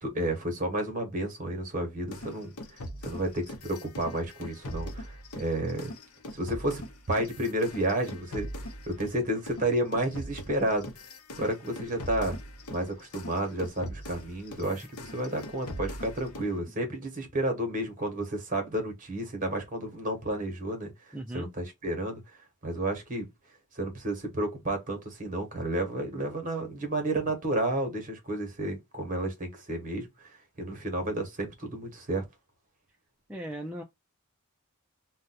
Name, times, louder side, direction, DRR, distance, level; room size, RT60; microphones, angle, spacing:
voice 1, 0.0-5.9 6.3-10.9 11.3-12.4 12.7-20.9 21.3-22.2 22.6-23.3 23.7-30.3 30.6-32.3, right 1 dB, 35° right, 1.1 m, -31 dB
sound 1, 2.1-9.2 9.5-16.6, left 1 dB, 75° left, 0.7 m, -41 dB
voice 2, 21.1-21.5 33.3-33.8, right 1 dB, 5° right, 0.3 m, -38 dB
2.5 x 2.2 x 4.0 m
head